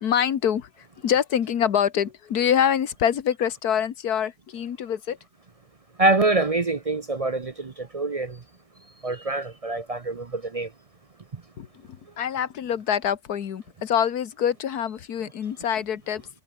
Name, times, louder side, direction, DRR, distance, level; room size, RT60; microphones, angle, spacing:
voice 1, 0.0-0.7 1.0-5.2 11.6-11.7 12.2-16.2, left 9 dB, 70° left, 1.7 m, -25 dB
voice 2, 6.0-8.4 9.0-10.7, right 2 dB, 45° right, 0.4 m, -25 dB
omnidirectional pair, 1.7 m